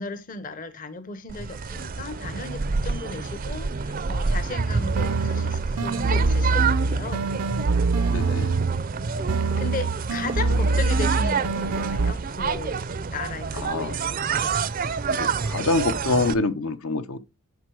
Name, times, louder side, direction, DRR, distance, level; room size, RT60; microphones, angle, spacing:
voice 1, 0.0-7.4 9.2-9.3 9.6-12.8 13.1-14.1 14.4-14.6, left 3 dB, 35° left, 0.7 m, -36 dB
sound 1, 1.3-16.3, right 5 dB, 40° right, 0.4 m, -28 dB
sound 2, 4.9-8.9 9.3-12.1, right 3 dB, 80° right, 0.6 m, -24 dB
voice 2, 8.1-8.6 13.5-14.0 15.1-17.2, left 3 dB, 70° left, 0.8 m, -26 dB
11.0 x 4.0 x 4.6 m
head